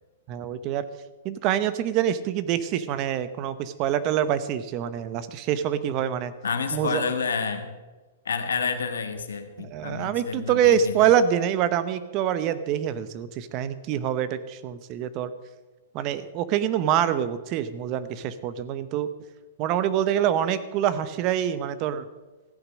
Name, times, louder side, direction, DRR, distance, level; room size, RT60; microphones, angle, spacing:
voice 1, 0.3-0.8 1.2-6.3 6.7-7.0 9.6-15.3 15.9-19.1 19.6-22.0, right 9 dB, 40° right, 13 dB, 0.8 m, -25 dB
voice 2, 6.4-7.7 8.2-10.9, left 5 dB, 90° left, 7 dB, 1.6 m, -29 dB
14.5 x 8.2 x 6.3 m, 1.2 s
hypercardioid pair, 130°, 0 cm